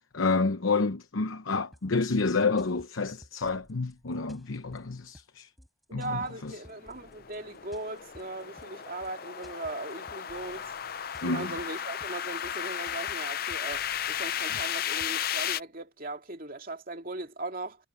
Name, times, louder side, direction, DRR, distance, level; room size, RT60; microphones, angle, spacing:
voice 1, 0.1-5.5 5.9-6.5 11.2-11.5, left 4 dB, 80° left, 0.9 m, -29 dB
sound 1, 1.7-15.3, equal, ahead, 5.9 m, -56 dB
voice 2, 5.9-10.7 11.2-17.8, right 2 dB, 45° right, 2.6 m, -38 dB
sound 2, 6.5-15.6, left 9 dB, 50° left, 0.6 m, -34 dB
head